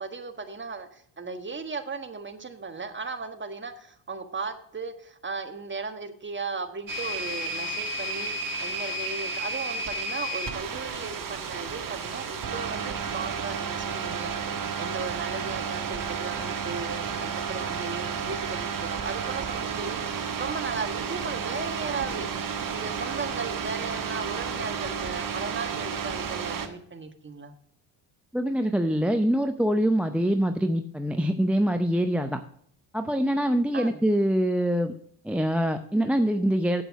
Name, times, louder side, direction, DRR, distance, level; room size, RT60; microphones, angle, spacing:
voice 1, 0.0-14.4 14.8-22.3 22.7-27.5 33.7-34.0, right 4 dB, 25° right, 7 dB, 1.5 m, -36 dB
sound 1, 6.9-26.7, right 5 dB, 40° right, 1.5 m, -32 dB
voice 2, 28.3-32.4 32.9-34.9 35.2-36.8, equal, 5° right, 6 dB, 0.6 m, -24 dB
8.3 x 7.8 x 4.7 m, 0.64 s
supercardioid pair, 75°, 49 cm